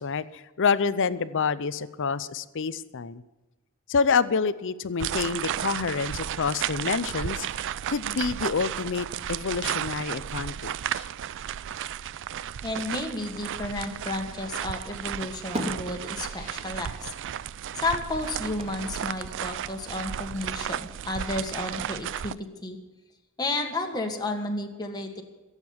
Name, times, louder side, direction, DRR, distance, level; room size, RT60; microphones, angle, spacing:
voice 1, 0.0-3.2 3.9-7.6 7.9-11.1, left 5 dB, 60° left, 15 dB, 0.6 m, -27 dB
sound 1, 5.0-22.3, right 10 dB, 60° right, 0.4 m, -33 dB
voice 2, 12.6-17.1 17.7-22.8 23.4-25.2, left 2 dB, 20° left, 2 dB, 1.6 m, -32 dB
sound 2, 14.8-15.0 15.3-16.9 17.2-17.3 18.6-19.2, equal, 25° right, 2.5 m, -38 dB
16.5 x 8.2 x 7.1 m, 1.1 s
head